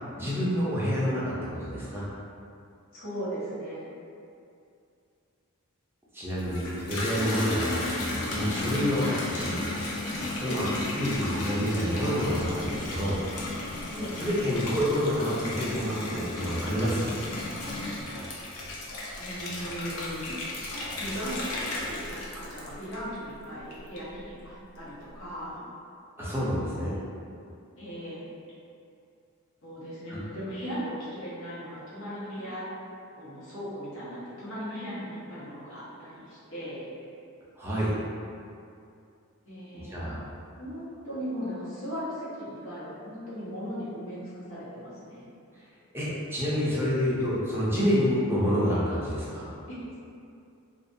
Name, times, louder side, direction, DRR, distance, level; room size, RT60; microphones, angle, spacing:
voice 1, 0.2-2.0 6.1-9.6 10.3-10.7 10.9-13.2 14.2-17.1 26.2-26.9 30.1-30.2 37.6-38.0 39.7-40.2 45.9-49.5, equal, 10° right, -8 dB, 0.5 m, -28 dB
voice 2, 2.9-3.9 10.4-10.6 13.9-14.2 19.2-20.4 21.0-25.6 27.8-28.2 29.6-32.7 33.2-36.9 39.4-40.1 40.6-45.2 49.7-50.0, equal, 60° left, -11 dB, 1.0 m, -38 dB
Water tap faucet / Bathtub (filling or washing), 6.3-23.2 23.7-24.3, left 2 dB, 85° left, 0.5 m, -34 dB
2.5 x 2.3 x 2.5 m, 2.5 s
head